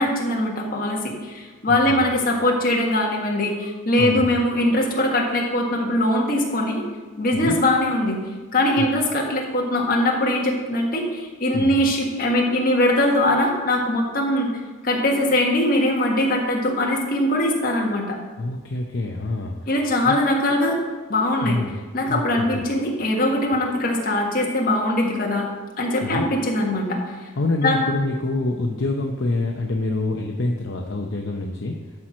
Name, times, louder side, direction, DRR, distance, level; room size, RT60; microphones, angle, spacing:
voice 1, 0.0-6.8 7.2-8.2 8.5-14.5 14.8-18.2 19.7-20.8 21.1-21.6 21.9-25.5 25.8-27.0 27.6-27.8, left 1 dB, 45° left, -1 dB, 1.6 m, -21 dB
voice 2, 1.7-2.0 4.0-4.3 7.3-7.6 8.8-8.9 11.5-11.8 18.4-19.6 20.0-20.2 21.4-21.7 22.1-22.6 26.0-26.2 27.4-31.7, left 2 dB, 60° left, 1 dB, 0.7 m, -26 dB
12.0 x 4.5 x 6.2 m, 1.4 s
head